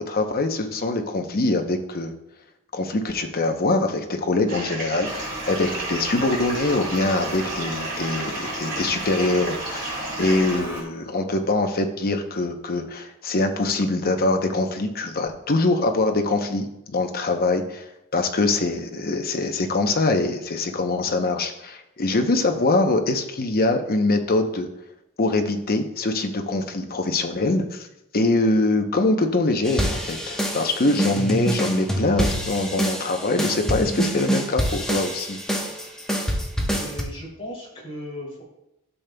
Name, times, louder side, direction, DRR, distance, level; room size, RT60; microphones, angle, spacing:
voice 1, 0.1-2.1 2.7-24.7 25.2-27.9 28.1-35.4, left 2 dB, 45° left, 5 dB, 0.8 m, -23 dB
sound 1, 4.5-10.6, right 2 dB, 45° right, 3.0 m, -33 dB
Toilet flush, 5.0-10.8, right 1 dB, 15° right, 2.1 m, -35 dB
sound 2, 29.6-37.0, equal, 5° left, 1.0 m, -26 dB
voice 2, 36.8-38.4, left 1 dB, 30° left, -3 dB, 2.7 m, -36 dB
12.5 x 6.7 x 2.3 m, 0.87 s
head